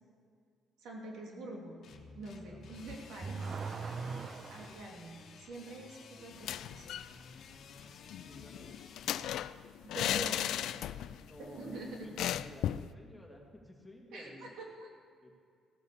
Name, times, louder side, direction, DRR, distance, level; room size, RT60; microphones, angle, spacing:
voice 1, 0.8-1.8 2.1-3.5 4.5-6.9 9.8-10.5 11.4-12.1 14.1-14.9, right 2 dB, 75° right, -1 dB, 2.9 m, -46 dB
sound 1, 1.8-9.3, left 5 dB, 60° left, 1.4 m, -54 dB
voice 2, 2.4-3.3 8.1-8.7 11.2-14.5 15.2-15.4, left 1 dB, 5° left, -1 dB, 2.3 m, -53 dB
Car / Accelerating revving vroom, 2.7-4.9, right 5 dB, 40° right, 0.7 m, -40 dB
sound 2, 6.3-7.1 7.4-7.5 7.8-11.3 11.5-11.7 12.2-12.9, left 11 dB, 75° left, 0.4 m, -36 dB
16.0 x 9.8 x 7.2 m, 2.2 s
cardioid pair, 120°, 0 cm